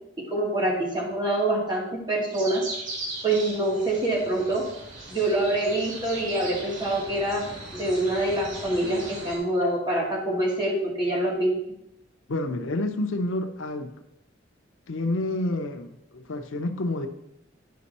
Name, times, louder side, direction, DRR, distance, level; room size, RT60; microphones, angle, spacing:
voice 1, 0.3-2.6 3.2-4.6 5.1-11.5, right 1 dB, 25° right, -4 dB, 2.2 m, -25 dB
sound 1, 2.3-9.4, right 2 dB, 85° right, 2.4 m, -39 dB
voice 2, 12.3-13.9 14.9-17.1, left 2 dB, 85° left, 7 dB, 0.7 m, -29 dB
10.5 x 5.3 x 4.2 m, 0.82 s
head